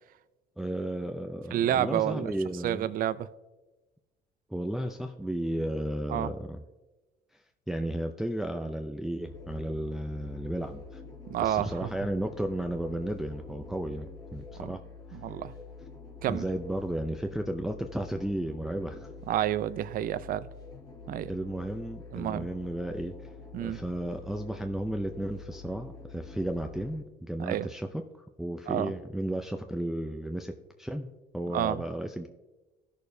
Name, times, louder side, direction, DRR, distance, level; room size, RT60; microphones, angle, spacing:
voice 1, 0.6-2.9 4.5-6.6 7.7-11.0 11.4-14.1 14.3-14.8 15.1-15.2 16.3-19.1 21.3-23.3 23.6-30.5 30.8-32.3, right 1 dB, ahead, 5 dB, 0.5 m, -34 dB
voice 2, 1.5-2.3 2.6-3.3 6.1-6.3 11.3-11.9 14.6-14.8 15.1-15.5 16.2-16.5 19.3-20.5 21.1-21.3 22.1-22.5 23.5-23.8 27.4-27.7 28.7-28.9 31.5-31.8, right 11 dB, 55° right, 15 dB, 0.5 m, -29 dB
sound 1, 9.2-27.0, left 4 dB, 20° left, 1.3 m, -47 dB
15.5 x 6.5 x 2.7 m, 1.1 s
cardioid pair, 110°, 17 cm